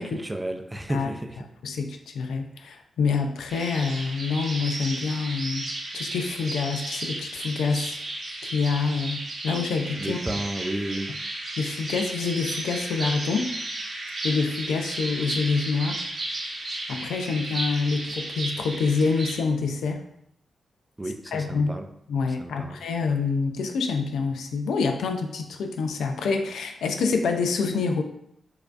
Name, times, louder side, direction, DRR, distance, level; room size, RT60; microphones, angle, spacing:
voice 1, 0.0-1.5 10.0-11.1 21.0-21.9 22.3-22.8, right 1 dB, 20° right, 6 dB, 0.4 m, -32 dB
voice 2, 1.6-5.7 5.9-8.0 8.5-10.2 11.6-13.5 14.2-16.0 16.9-20.1 21.3-21.7 22.1-28.0, left 4 dB, 85° left, 5 dB, 0.3 m, -26 dB
sound 1, 3.5-19.4, right 2 dB, 55° right, 0.8 m, -34 dB
4.5 x 2.5 x 2.4 m, 0.74 s
cardioid pair, 50°, 0 cm